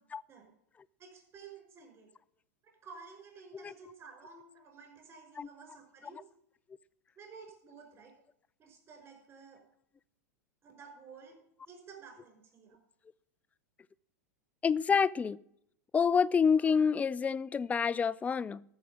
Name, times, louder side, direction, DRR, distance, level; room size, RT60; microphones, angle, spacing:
voice 1, 1.0-2.1 2.6-6.2 7.2-8.1 8.6-9.6 10.6-11.3 11.7-12.8, right 5 dB, 30° right, 5.6 m, -52 dB
voice 2, 14.6-15.4 15.9-18.6, left 6 dB, 15° left, 0.4 m, -28 dB
13.5 x 6.3 x 7.0 m
hypercardioid pair, 95°, 9 cm